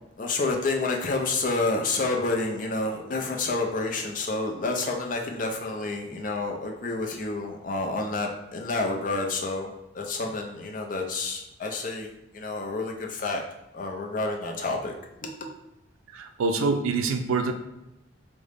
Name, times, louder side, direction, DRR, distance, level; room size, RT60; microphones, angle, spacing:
voice 1, 0.2-13.4 13.7-14.9 15.2-15.3, left 3 dB, 40° left, 1 dB, 0.4 m, -29 dB
voice 2, 16.1-17.5, right 4 dB, 80° right, 6 dB, 0.4 m, -25 dB
3.7 x 2.1 x 3.3 m, 0.92 s
head